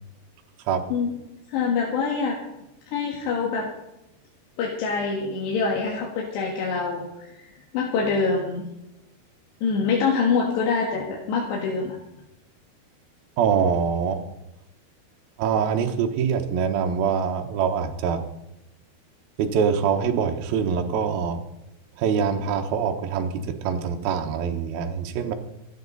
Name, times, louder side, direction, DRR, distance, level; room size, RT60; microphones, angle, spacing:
voice 1, 1.5-2.4 2.9-3.7 4.6-8.7 9.6-12.0, left 5 dB, 85° left, -1 dB, 3.9 m, -25 dB
voice 2, 13.4-14.2 15.4-18.2 19.4-21.4 22.0-25.3, right 6 dB, 70° right, 3 dB, 2.8 m, -24 dB
26.5 x 9.4 x 4.0 m, 0.89 s
omnidirectional pair, 4.8 m